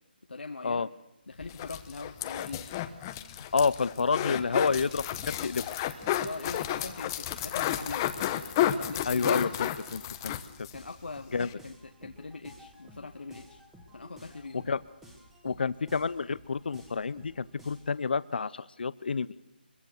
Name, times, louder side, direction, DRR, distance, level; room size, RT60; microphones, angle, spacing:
voice 1, 0.3-0.9 1.3-2.7 4.0-4.1 6.2-8.1 8.7-9.4 10.7-13.6 13.9-14.7, left 3 dB, 90° left, 4 dB, 1.4 m, -42 dB
sound 1, 1.4-10.8 11.1-11.2 11.4-11.5, left 12 dB, 20° left, 1.0 m, -32 dB
voice 2, 3.5-5.6 9.1-10.3 11.3-11.5 14.5-14.8 15.4-19.3, left 5 dB, 65° left, 17 dB, 0.8 m, -29 dB
sound 2, 4.3-18.0, equal, 5° right, 2.1 m, -54 dB
23.5 x 22.5 x 6.7 m, 0.87 s
hypercardioid pair, 165°, 6 cm